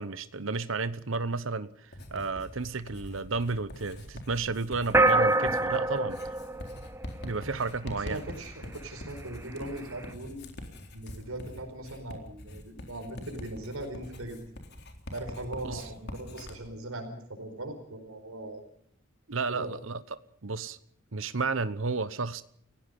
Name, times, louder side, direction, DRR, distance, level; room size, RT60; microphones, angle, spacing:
voice 1, 0.0-6.2 7.2-8.2 15.6-15.8 19.3-20.0 20.4-20.8 21.1-22.4, right 4 dB, 65° right, 14 dB, 1.0 m, -32 dB
Writing, 1.9-16.6, left 1 dB, 50° left, 3.8 m, -44 dB
sound 1, 4.9-7.6, right 2 dB, 10° right, 0.7 m, -25 dB
voice 2, 8.0-10.4 10.9-14.4 15.1-18.6 19.5-19.7, right 1 dB, 90° right, 5 dB, 4.7 m, -39 dB
29.5 x 16.5 x 5.3 m, 0.64 s
head